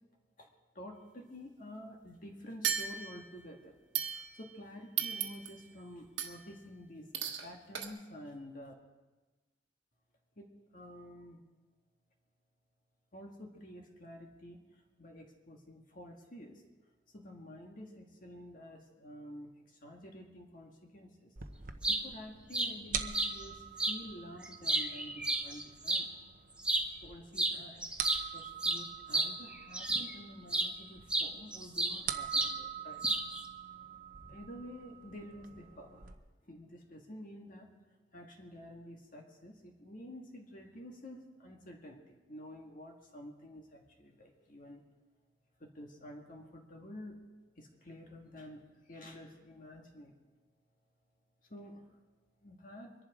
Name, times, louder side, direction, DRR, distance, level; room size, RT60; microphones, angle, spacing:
voice 1, 0.8-3.8 4.0-7.1 7.4-8.7 10.4-10.5 10.7-11.4 13.1-16.6 17.1-21.3 21.9-26.1 27.0-27.9 28.3-33.0 34.3-36.0 36.4-37.7 38.1-44.8 45.6-47.2 47.6-50.1 51.5-52.0 52.4-52.9, equal, 45° left, 1 dB, 1.8 m, -50 dB
sound 1, 2.6-3.4 3.9-4.6 5.0-5.7 6.2-6.5 7.1-7.5 7.7-7.9, right 8 dB, 75° right, 1.5 m, -36 dB
sound 2, 21.4-36.1, right 8 dB, 45° right, 0.9 m, -45 dB
sound 3, 21.6-22.0 22.5-22.7 23.1-23.3 23.8-24.0 24.4-26.1 26.6-26.9 27.4-27.6 27.8-30.1 30.5-30.7 31.1-32.0 32.3-32.5 33.0-33.4, right 2 dB, 5° right, 0.9 m, -31 dB
23.5 x 11.0 x 4.9 m, 1.2 s
head